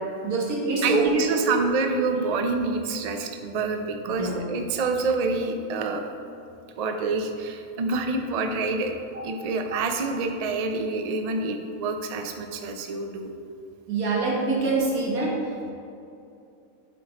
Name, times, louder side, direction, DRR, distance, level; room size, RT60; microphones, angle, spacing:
voice 1, 0.0-1.6 4.2-4.4 9.1-9.2 13.9-15.3, right 3 dB, 85° right, -3 dB, 1.8 m, -25 dB
voice 2, 0.8-6.1 6.8-9.0 9.2-13.3, right 3 dB, 70° right, 5 dB, 0.3 m, -27 dB
8.2 x 4.9 x 4.1 m, 2.7 s
omnidirectional pair, 1.5 m